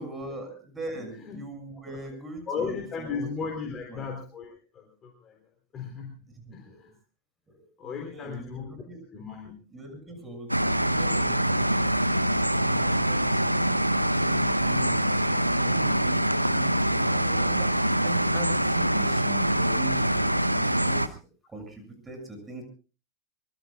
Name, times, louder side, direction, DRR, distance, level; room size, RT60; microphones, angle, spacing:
voice 1, 0.0-3.3 3.6-4.1 6.3-6.9 7.5-9.0 9.7-13.8 14.1-21.2 21.5-22.6, right 1 dB, 15° right, 4 dB, 6.8 m, -41 dB
voice 2, 0.9-1.4 1.9-2.0 2.5-5.4 5.7-6.2 6.5-6.9 7.8-8.7 9.1-9.5, left 5 dB, 25° left, 2 dB, 3.7 m, -36 dB
sound 1, 10.5-21.1, right 1 dB, 90° right, 0.8 m, -24 dB
24.5 x 22.5 x 2.4 m, 0.35 s
figure-of-eight pair, 90°, 0 cm